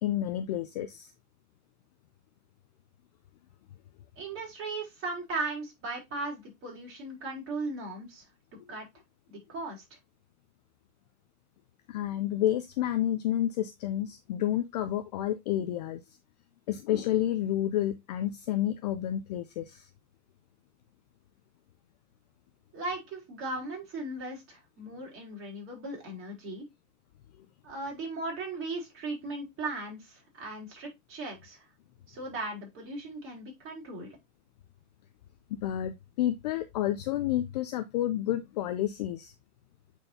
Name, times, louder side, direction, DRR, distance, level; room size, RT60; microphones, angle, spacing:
voice 1, 0.0-1.1 8.6-8.7 11.9-16.0 16.7-19.9 35.5-39.3, left 12 dB, 30° left, 0.4 m, -30 dB
voice 2, 4.2-8.2 8.7-8.9 9.3-9.8 22.7-26.7 27.6-31.6 32.1-34.1, right 2 dB, 30° right, 4.5 m, -37 dB
8.6 x 4.5 x 2.6 m
hypercardioid pair, 130°, 45 cm